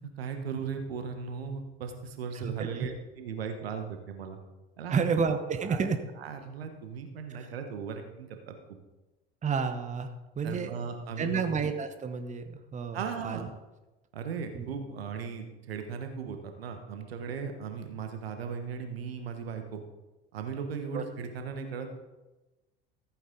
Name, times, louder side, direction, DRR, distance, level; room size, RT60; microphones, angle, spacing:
voice 1, 0.2-4.4 4.8-5.0 5.6-5.8 6.2-8.8 10.4-11.4 12.9-13.5 14.1-19.8 20.3-22.0, right 6 dB, 70° right, 6 dB, 1.3 m, -37 dB
voice 2, 2.3-2.9 4.9-6.0 7.3-7.5 9.4-10.7 11.2-13.5 14.5-14.7 20.9-21.0, right 5 dB, 25° right, 8 dB, 1.1 m, -31 dB
14.5 x 9.3 x 3.9 m, 1.1 s
figure-of-eight pair, 65°, 31 cm